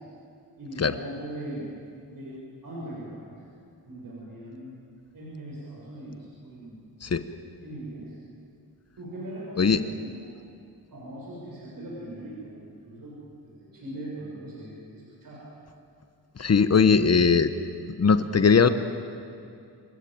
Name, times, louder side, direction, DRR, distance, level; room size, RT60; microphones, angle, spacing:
voice 1, 0.6-1.7 2.1-3.5 3.9-4.7 5.1-6.8 7.6-8.2 9.0-10.3 10.9-13.2 13.4-15.4, right 1 dB, 55° right, -5 dB, 7.1 m, -40 dB
voice 2, 16.4-17.5 17.9-18.7, left 5 dB, 40° left, 11 dB, 1.1 m, -20 dB
27.5 x 15.0 x 9.0 m, 2.5 s
cardioid pair, 100°, 39 cm